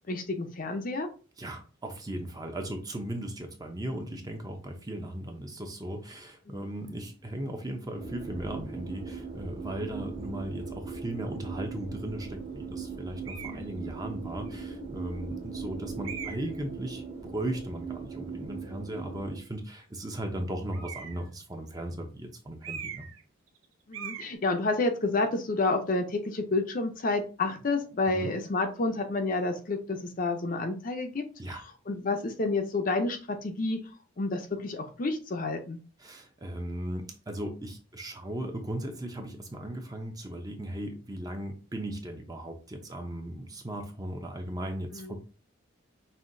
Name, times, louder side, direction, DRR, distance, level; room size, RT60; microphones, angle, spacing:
voice 1, 0.1-1.1 6.5-6.7 13.4-13.7 23.9-31.2 31.9-33.8 34.2-35.8 44.9-45.2, left 3 dB, 40° left, 5 dB, 0.6 m, -29 dB
voice 2, 1.4-23.1 28.1-28.4 31.4-31.6 36.0-45.2, right 1 dB, 20° right, 3 dB, 0.7 m, -37 dB
sound 1, 8.0-19.4, right 5 dB, 35° right, 1.2 m, -39 dB
sound 2, 13.2-13.6 14.5-14.6 16.0-16.6 20.7-21.3 22.6-23.2 23.5-23.6 23.9-24.3, right 8 dB, 80° right, 0.7 m, -40 dB
5.6 x 2.7 x 2.6 m, 0.35 s
head